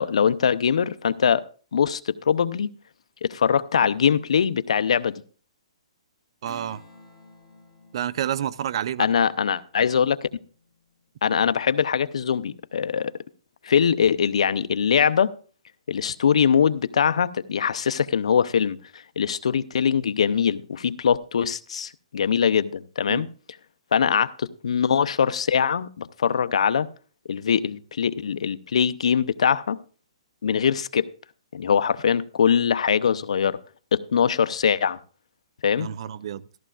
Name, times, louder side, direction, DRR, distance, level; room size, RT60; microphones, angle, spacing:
voice 1, 0.0-1.4 1.7-2.7 3.2-5.2 9.0-10.2 11.2-13.1 13.6-15.3 15.9-18.8 19.2-23.3 23.9-26.9 27.3-29.8 30.4-31.1 31.5-33.6 33.9-35.0 35.6-35.9, left 7 dB, 75° left, 0.6 m, -22 dB
Strum, 6.4-11.3, equal, 5° left, 3.8 m, -53 dB
voice 2, 6.4-6.8 7.9-9.1 23.1-23.3 35.8-36.4, right 10 dB, 55° right, 0.5 m, -29 dB
14.0 x 13.5 x 2.4 m
hypercardioid pair, 150°, 3 cm